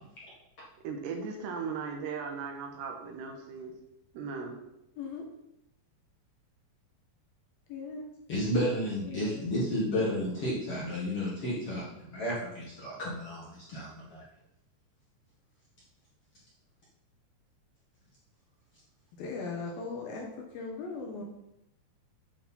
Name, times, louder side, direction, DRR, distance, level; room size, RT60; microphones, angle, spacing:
voice 1, 0.8-3.7 4.1-4.5, right 5 dB, 75° right, 3 dB, 3.1 m, -37 dB
voice 2, 7.7-8.1 9.1-9.4 19.2-20.3 20.5-21.2, left 4 dB, 70° left, 0 dB, 2.5 m, -38 dB
voice 3, 8.3-14.2, equal, 50° left, -6 dB, 1.9 m, -32 dB
9.2 x 4.6 x 5.5 m, 0.84 s
omnidirectional pair, 5.1 m